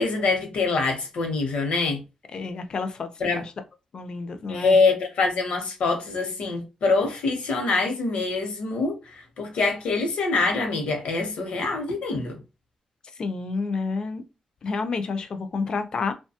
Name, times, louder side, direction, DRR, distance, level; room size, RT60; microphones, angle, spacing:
voice 1, 0.0-2.0 3.2-3.4 4.5-9.0 9.4-12.4, left 3 dB, 70° left, 0.8 m, -24 dB
voice 2, 2.3-3.5 3.9-4.8 13.2-14.2 14.6-16.1, left 4 dB, 40° left, 0.4 m, -30 dB
2.6 x 2.2 x 2.8 m
wide cardioid pair, 175°, 2 cm